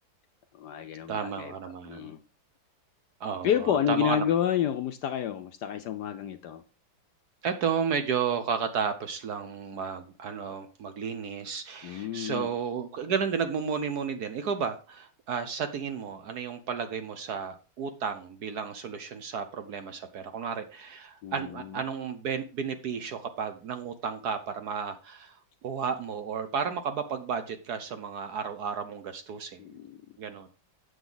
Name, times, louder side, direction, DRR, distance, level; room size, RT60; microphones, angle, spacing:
voice 1, 0.6-1.5 1.8-2.2 3.4-6.6 11.8-12.5 21.2-21.8 29.6-30.0, left 9 dB, 70° left, 9 dB, 1.1 m, -29 dB
voice 2, 1.1-2.1 3.2-4.2 7.4-29.6 30.2-30.5, right 6 dB, 60° right, 8 dB, 1.2 m, -33 dB
8.1 x 7.1 x 3.9 m, 0.35 s
omnidirectional pair, 2.2 m